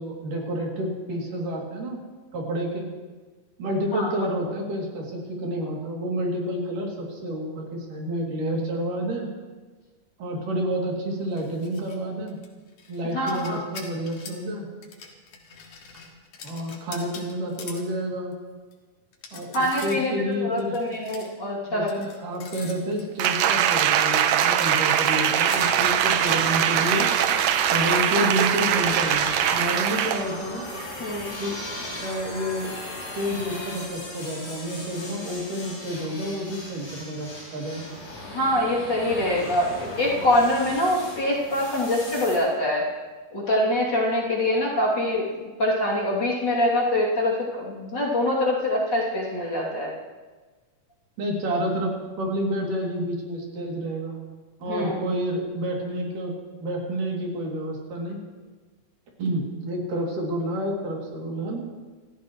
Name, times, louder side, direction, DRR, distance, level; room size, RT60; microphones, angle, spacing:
voice 1, 0.0-2.0 2.3-2.9 3.6-9.3 10.2-12.4 12.9-14.7 16.4-18.4 19.3-20.8 21.7-27.4 27.7-30.6 31.4-31.6 32.0-32.7 33.1-37.8 51.2-54.2 54.6-58.2 59.2-61.6, equal, 90° right, -1 dB, 4.4 m, -29 dB
sound 1, 11.3-12.0 12.3-14.4 14.8-17.9 18.3-18.4 18.7-18.8 19.1-20.0 20.3-21.3 21.9-23.4 23.9-24.0 24.4-26.3, left 5 dB, 75° left, 3.2 m, -43 dB
voice 2, 13.1-13.6 19.5-21.9 31.0-31.4 38.2-42.9 43.3-45.3 45.6-49.9 54.6-55.0, left 1 dB, 35° left, -4 dB, 3.1 m, -24 dB
Applause, 23.2-30.3 30.8-30.9, right 9 dB, 70° right, 1.8 m, -22 dB
sound 2, 25.4-42.4, left 1 dB, 50° left, 7.3 m, -37 dB
26.0 x 15.0 x 3.1 m, 1.3 s
omnidirectional pair, 3.6 m